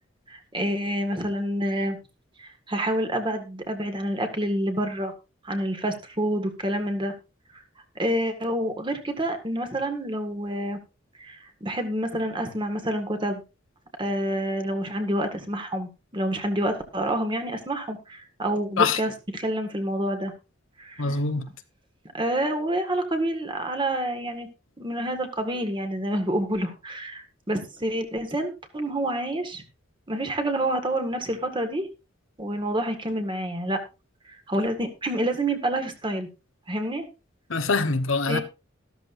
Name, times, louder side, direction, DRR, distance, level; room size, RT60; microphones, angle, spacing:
voice 1, 0.3-2.0 2.4-5.1 5.4-7.1 8.0-10.8 11.2-13.4 14.0-20.3 20.8-21.1 22.1-24.5 24.8-29.6 30.1-31.9 32.4-33.8 34.5-36.3 36.7-37.0 38.3-38.4, right 1 dB, 25° right, 1.8 m, -28 dB
voice 2, 21.0-21.5 37.5-38.4, left 4 dB, 75° left, 1.1 m, -24 dB
13.5 x 13.0 x 2.6 m
head